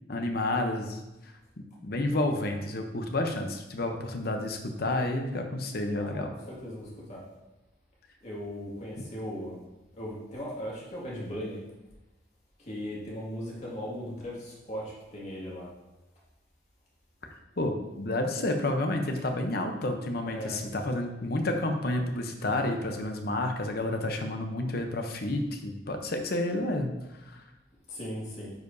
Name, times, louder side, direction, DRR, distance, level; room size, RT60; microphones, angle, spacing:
voice 1, 0.1-6.3 17.6-26.9 27.2-27.4, left 1 dB, 60° left, 4 dB, 0.8 m, -30 dB
voice 2, 5.9-7.2 8.2-9.6 10.0-11.6 12.6-15.7 20.3-20.6 27.9-28.5, equal, 40° left, -5 dB, 2.0 m, -38 dB
9.5 x 4.9 x 2.7 m, 1.0 s
head